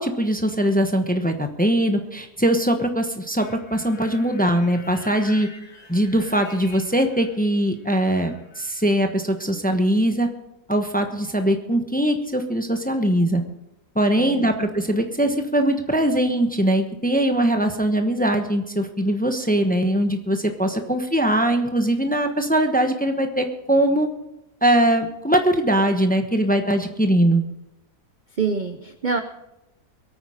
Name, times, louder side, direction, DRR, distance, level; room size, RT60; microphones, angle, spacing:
voice 1, 0.0-5.5 5.9-10.3 10.7-13.4 13.9-24.1 24.6-27.5, right 1 dB, 5° left, 6 dB, 0.8 m, -21 dB
sound 1, 3.4-7.5 7.7-8.9, left 3 dB, 50° left, 2.8 m, -45 dB
voice 2, 14.2-14.5 20.8-20.9 28.4-29.2, right 5 dB, 50° right, 9 dB, 0.6 m, -26 dB
22.5 x 9.0 x 5.0 m, 0.89 s
omnidirectional pair, 1.7 m